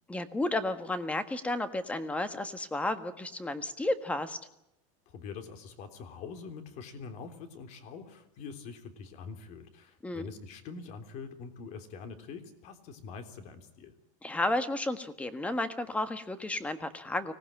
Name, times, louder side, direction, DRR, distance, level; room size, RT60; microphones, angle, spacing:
voice 1, 0.1-4.4 10.0-10.3 14.2-17.3, left 2 dB, 5° left, 10 dB, 1.5 m, -32 dB
voice 2, 5.1-13.9, left 5 dB, 40° left, 8 dB, 3.4 m, -44 dB
25.0 x 19.0 x 8.9 m, 0.86 s
supercardioid pair, 155°, 18 cm